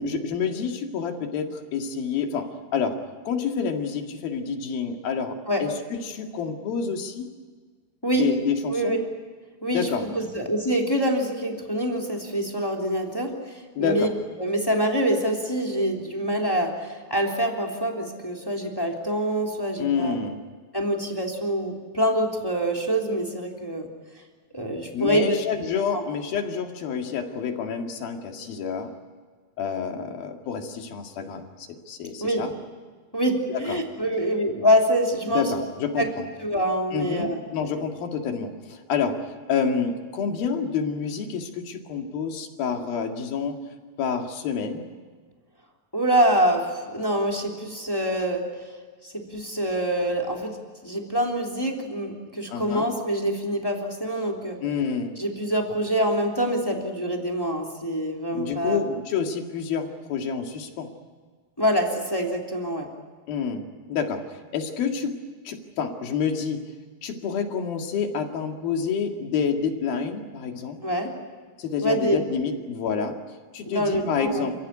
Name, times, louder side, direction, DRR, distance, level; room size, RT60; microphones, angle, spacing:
voice 1, 0.0-3.0 3.3-5.8 6.0-7.3 8.1-9.0 9.7-10.0 13.8-14.1 19.8-20.4 24.9-28.9 29.6-32.6 33.5-33.8 35.3-36.3 36.9-39.2 39.5-43.6 44.0-44.8 52.5-53.0 54.6-55.2 58.3-60.9 63.3-66.7 67.0-70.8 71.6-73.2 73.5-74.5, left 6 dB, 60° left, 3 dB, 3.6 m, -28 dB
voice 2, 9.6-14.1 14.4-20.1 20.7-23.9 24.5-25.4 25.9-26.0 32.2-32.4 33.1-35.6 36.0-36.1 36.4-37.4 45.9-48.4 49.0-50.6 50.8-54.6 55.2-58.8 61.6-62.9 70.8-71.1 71.8-72.2 73.7-74.5, equal, 5° left, 0 dB, 2.4 m, -25 dB
29.0 x 17.0 x 9.9 m, 1.5 s
omnidirectional pair, 5.0 m